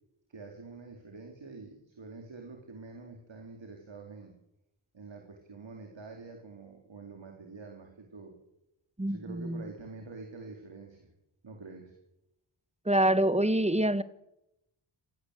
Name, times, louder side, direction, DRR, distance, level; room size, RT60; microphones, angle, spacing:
voice 1, 0.3-4.3 4.9-8.4 9.0-11.1 11.4-11.9, right 3 dB, 65° right, 2 dB, 4.0 m, -46 dB
voice 2, 9.0-9.6 12.8-14.0, right 1 dB, 15° right, 14 dB, 1.4 m, -26 dB
28.0 x 16.0 x 8.3 m, 0.86 s
wide cardioid pair, 65°, 49 cm